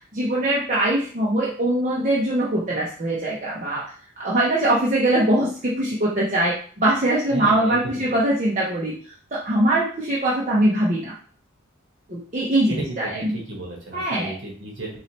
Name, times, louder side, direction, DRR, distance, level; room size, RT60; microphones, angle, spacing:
voice 1, 0.1-8.9 9.3-11.1 12.1-13.3 13.9-14.3, right 1 dB, 35° right, -6 dB, 0.8 m, -22 dB
voice 2, 7.3-8.2 12.7-15.0, right 2 dB, 65° right, -2 dB, 1.2 m, -34 dB
4.8 x 3.0 x 2.9 m, 0.43 s
head